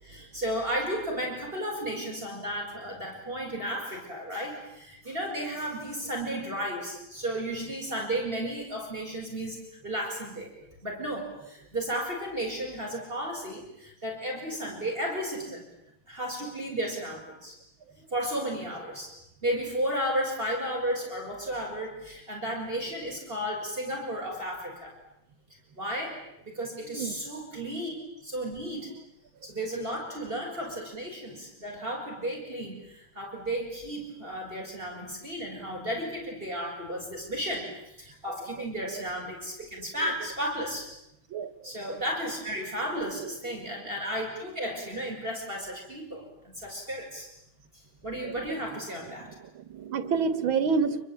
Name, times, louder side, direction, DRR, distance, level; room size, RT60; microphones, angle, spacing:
voice 1, 0.0-10.5 10.8-15.7 16.1-17.6 18.1-19.1 19.4-24.9 25.7-26.2 26.5-27.9 28.2-28.9 29.4-40.9 41.6-47.3 48.0-49.3, equal, 25° right, -1 dB, 6.6 m, -33 dB
voice 2, 26.8-27.2 41.3-41.5 48.2-48.3 49.5-51.0, right 5 dB, 85° right, 12 dB, 2.4 m, -28 dB
28.5 x 22.5 x 9.2 m, 0.80 s
omnidirectional pair, 2.1 m